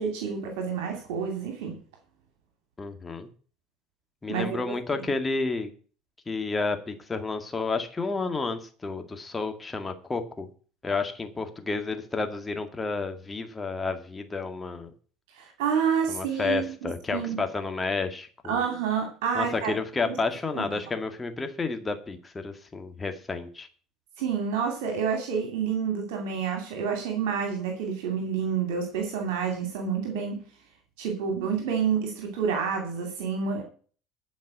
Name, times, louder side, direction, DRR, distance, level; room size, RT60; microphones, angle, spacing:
voice 1, 0.0-1.8 4.3-5.1 15.4-17.4 18.5-19.8 20.0-20.2 20.5-20.6 24.2-30.4 31.0-33.6, right 6 dB, 65° right, 2.5 m, -29 dB
voice 2, 2.8-3.3 4.2-5.7 6.3-10.5 10.8-14.9 16.1-18.6 19.3-23.7, left 3 dB, 20° left, 2.0 m, -31 dB
12.5 x 5.3 x 8.8 m
figure-of-eight pair, 65°, 0 cm